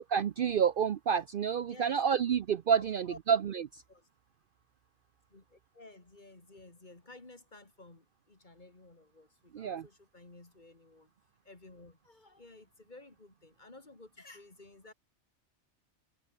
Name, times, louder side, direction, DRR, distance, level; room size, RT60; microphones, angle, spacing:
voice 1, 0.0-3.8 9.5-9.8, right 7 dB, 55° right, 0.7 m, -29 dB
voice 2, 1.7-2.0 2.7-3.2 3.9-4.1 5.3-11.1 11.4-14.9, left 2 dB, 40° left, 2.8 m, -54 dB
omnidirectional pair, 1.2 m